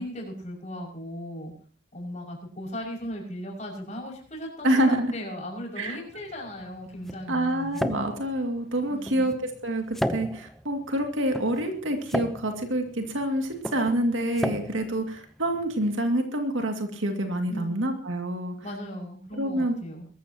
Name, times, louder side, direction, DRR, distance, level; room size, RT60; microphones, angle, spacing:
voice 1, 0.0-1.5 1.9-7.8 8.9-9.4 17.5-17.9 18.6-20.1, equal, 35° left, -1 dB, 6.0 m, -37 dB
voice 2, 4.6-5.1 5.8-6.0 7.3-18.6 19.4-19.7, right 1 dB, 75° right, 4 dB, 2.3 m, -27 dB
sound 1, 6.1-15.9, equal, ahead, 0.7 m, -35 dB
22.0 x 14.5 x 2.9 m, 0.43 s
head